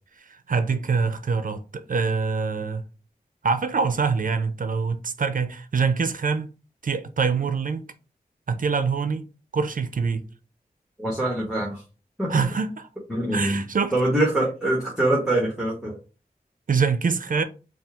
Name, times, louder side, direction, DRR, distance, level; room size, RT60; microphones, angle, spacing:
voice 1, 0.2-2.8 3.4-6.5 6.8-7.9 8.5-9.3 9.5-10.3 12.3-12.9 13.3-13.9 16.7-17.4, right 5 dB, 65° right, 0.5 m, -24 dB
voice 2, 11.0-11.8 12.2-12.5 13.1-13.6 13.9-16.0, right 1 dB, 5° right, 1.3 m, -24 dB
4.2 x 2.3 x 3.4 m
wide cardioid pair, 65°, 15 cm